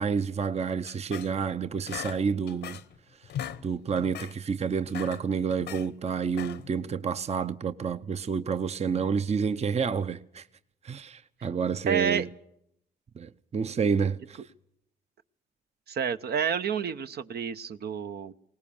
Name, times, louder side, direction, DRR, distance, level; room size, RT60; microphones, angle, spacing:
voice 1, 0.0-2.8 3.2-3.3 3.6-10.4 10.8-12.3 13.1-14.4, right 6 dB, 40° right, 0.7 m, -29 dB
sound 1, 0.9-1.5 1.9-3.0 3.2-3.6 4.0-4.4 4.8-5.9 6.3-6.8, left 10 dB, 80° left, 1.0 m, -39 dB
voice 2, 11.9-12.2 15.9-18.3, right 7 dB, 65° right, 0.9 m, -29 dB
20.0 x 18.5 x 7.1 m
cardioid pair, 70°, 17 cm